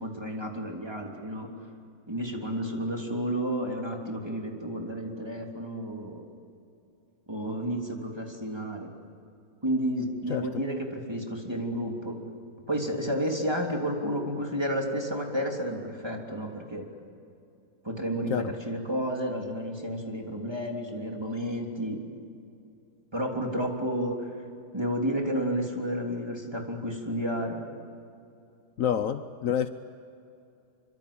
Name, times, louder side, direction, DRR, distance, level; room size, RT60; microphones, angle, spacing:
voice 1, 0.0-1.5 2.1-6.2 7.3-8.9 9.6-12.2 12.7-16.9 17.8-22.0 23.1-24.4 24.7-27.6, equal, 15° right, 1 dB, 3.3 m, -31 dB
voice 2, 10.3-10.6 18.3-18.5 28.8-29.7, left 9 dB, 65° left, 11 dB, 1.1 m, -28 dB
26.0 x 24.5 x 8.7 m, 2.6 s
omnidirectional pair, 1.6 m